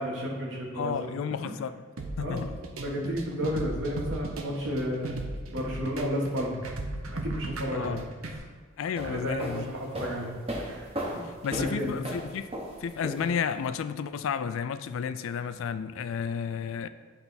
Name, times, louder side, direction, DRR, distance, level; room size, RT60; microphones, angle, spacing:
voice 1, 0.0-1.1 2.2-2.4 2.8-6.6 7.1-8.4 9.0-11.2 11.5-11.9, equal, 55° right, -3 dB, 1.5 m, -33 dB
voice 2, 0.8-1.7 2.2-2.6 7.7-8.0 8.8-9.7 11.2-12.5 12.8-16.9, left 7 dB, 70° left, 11 dB, 0.3 m, -32 dB
sound 1, 2.0-8.4, right 2 dB, 75° right, 0.7 m, -36 dB
sound 2, 8.8-13.7, equal, 25° right, 0.8 m, -37 dB
9.6 x 3.4 x 4.1 m, 1.5 s
head